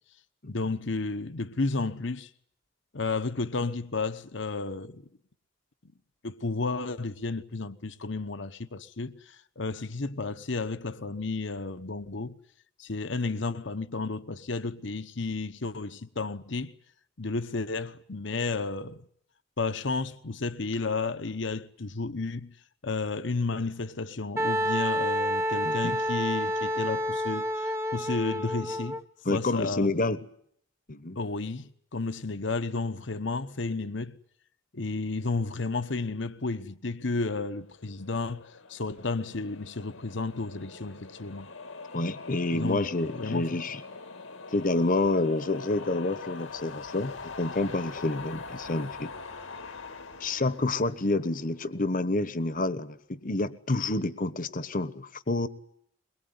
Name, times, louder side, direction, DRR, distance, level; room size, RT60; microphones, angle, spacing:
voice 1, 0.5-2.3 2.9-5.1 6.2-12.4 12.8-16.7 17.2-19.0 19.6-22.6 22.8-29.0 29.3-29.9 31.2-34.2 34.7-41.5 42.5-42.9 43.2-43.6, left 3 dB, 65° left, 1.1 m, -32 dB
Wind instrument woodwind instrument, 24.4-29.0, equal, 10° right, 1.0 m, -29 dB
voice 2, 29.2-30.2 30.9-31.2 41.9-43.8 44.5-49.1 50.2-55.5, left 2 dB, 40° left, 1.2 m, -28 dB
sound 1, 37.7-52.0, left 4 dB, 80° left, 2.1 m, -43 dB
22.5 x 22.0 x 9.7 m
head